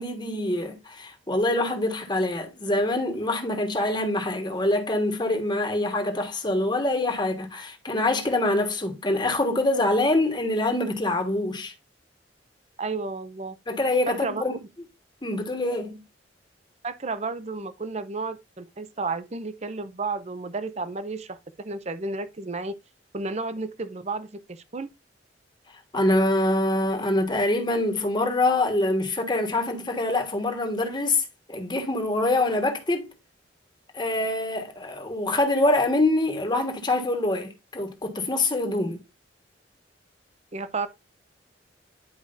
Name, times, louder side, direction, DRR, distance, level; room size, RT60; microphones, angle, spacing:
voice 1, 0.0-11.7 13.7-14.6 15.2-16.0 25.9-33.1 33.9-39.0, left 2 dB, 25° left, 1.4 m, -25 dB
voice 2, 12.8-13.6 14.1-14.5 16.8-22.7 23.1-24.9 40.5-40.9, right 3 dB, 40° right, 0.7 m, -32 dB
10.5 x 4.8 x 2.6 m
head